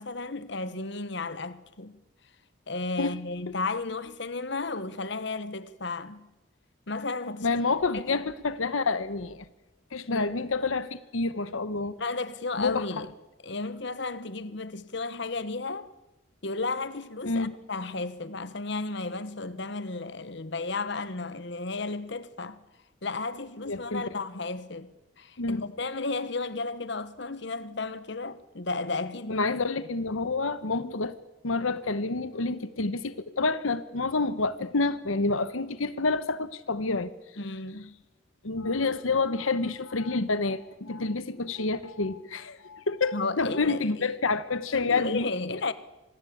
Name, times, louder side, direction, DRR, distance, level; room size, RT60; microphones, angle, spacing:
voice 1, 0.0-1.9 2.7-6.2 6.9-7.5 7.9-8.2 10.1-10.3 12.0-13.1 13.4-15.9 16.4-22.6 23.0-24.9 25.2-29.5 37.4-37.9 43.1-44.1 44.7-45.7, left 3 dB, 60° left, 1.2 m, -33 dB
voice 2, 7.4-9.4 9.9-11.9 12.6-13.1 17.2-17.5 23.7-24.0 25.4-25.6 29.3-31.2 31.4-37.1 38.4-45.3, left 3 dB, 85° left, 1.1 m, -28 dB
26.5 x 19.5 x 8.6 m
head